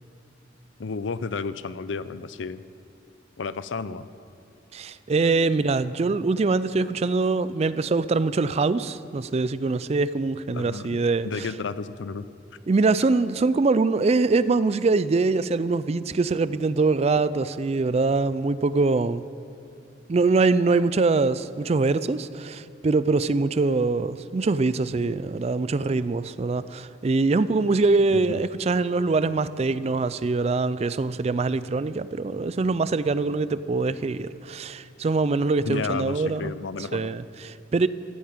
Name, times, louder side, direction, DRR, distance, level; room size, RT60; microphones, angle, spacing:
voice 1, 0.8-2.6 3.4-4.1 10.5-12.2 28.1-28.2 35.6-37.1, left 4 dB, 80° left, 15 dB, 0.5 m, -32 dB
voice 2, 4.7-11.5 12.7-19.2 20.1-36.5 36.9-37.9, right 3 dB, 35° right, 15 dB, 0.4 m, -23 dB
15.0 x 8.5 x 8.9 m, 2.6 s
head